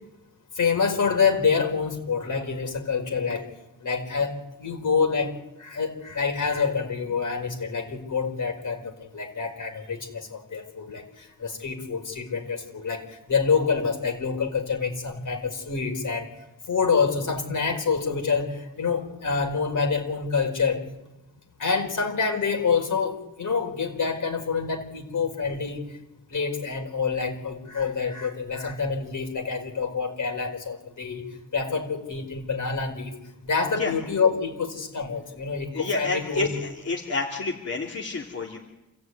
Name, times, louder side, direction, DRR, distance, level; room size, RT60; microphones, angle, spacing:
voice 1, 0.5-3.4 3.8-5.3 5.6-13.0 13.3-16.3 16.7-20.8 21.6-25.8 26.3-31.3 31.5-33.1 33.4-36.5, left 5 dB, 60° left, 3 dB, 4.9 m, -27 dB
voice 2, 35.7-38.6, left 3 dB, 45° left, -2 dB, 3.2 m, -29 dB
28.0 x 15.0 x 9.6 m, 0.98 s
cardioid pair, 90°, 34 cm